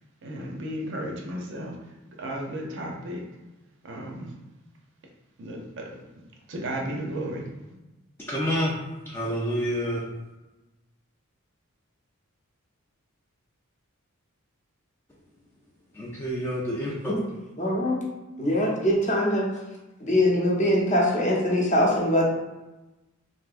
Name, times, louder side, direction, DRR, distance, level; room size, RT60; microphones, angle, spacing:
voice 1, 0.2-1.9 2.2-3.2 3.8-4.3 5.4-5.9 6.5-7.5, right 1 dB, 60° right, 0 dB, 0.6 m, -34 dB
voice 2, 8.3-8.7 9.0-10.0 15.9-17.1, equal, 10° left, -5 dB, 0.4 m, -28 dB
voice 3, 17.6-18.0 18.4-19.5 20.0-22.3, left 1 dB, 35° left, -3 dB, 0.8 m, -22 dB
3.5 x 2.7 x 2.4 m, 1.1 s
head